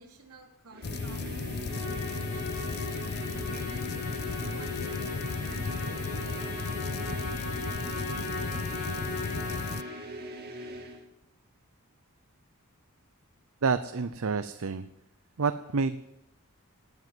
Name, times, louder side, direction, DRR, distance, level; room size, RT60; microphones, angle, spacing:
voice 1, 0.0-2.3 3.5-7.7, right 3 dB, 80° right, 2 dB, 3.3 m, -52 dB
sound 1, 0.7-11.0, right 1 dB, 45° right, 2.2 m, -41 dB
sound 2, 0.8-9.8, left 4 dB, 50° left, 0.5 m, -35 dB
Musical instrument, 1.7-10.2, left 3 dB, 85° left, 2.3 m, -39 dB
voice 2, 13.6-14.9 15.4-16.0, right 4 dB, 65° right, 11 dB, 0.6 m, -28 dB
18.5 x 8.0 x 9.4 m, 0.90 s
head